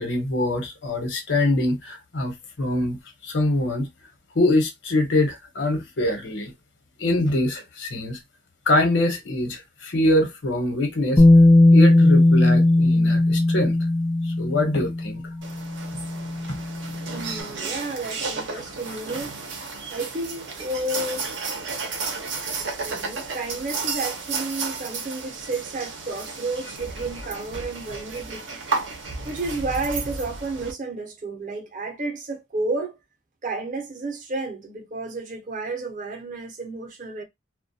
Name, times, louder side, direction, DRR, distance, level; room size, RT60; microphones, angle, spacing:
voice 1, 0.0-3.0 3.2-3.9 4.3-6.5 7.0-8.2 8.7-11.2 11.7-13.8 14.4-15.2, left 1 dB, 90° left, 0.9 m, -24 dB
Bass guitar, 11.2-17.2, left 2 dB, 10° left, 0.4 m, -18 dB
sound 1, 15.4-30.7, right 4 dB, 85° right, 0.7 m, -33 dB
voice 2, 17.1-19.4 19.9-21.3 22.8-28.6 29.2-33.0 33.4-37.2, right 2 dB, 45° right, 0.6 m, -31 dB
2.2 x 2.2 x 2.6 m
head